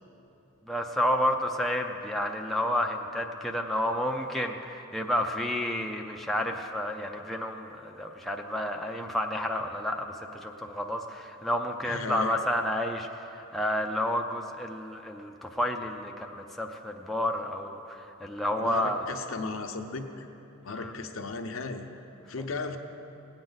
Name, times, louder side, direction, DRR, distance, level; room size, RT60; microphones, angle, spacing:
voice 1, 0.7-19.0 20.7-20.9, left 1 dB, ahead, 1 dB, 0.4 m, -30 dB
voice 2, 11.8-12.4 18.6-20.3 20.6-21.8 22.3-22.8, left 3 dB, 70° left, 5 dB, 0.8 m, -35 dB
17.5 x 8.9 x 4.0 m, 2.9 s
head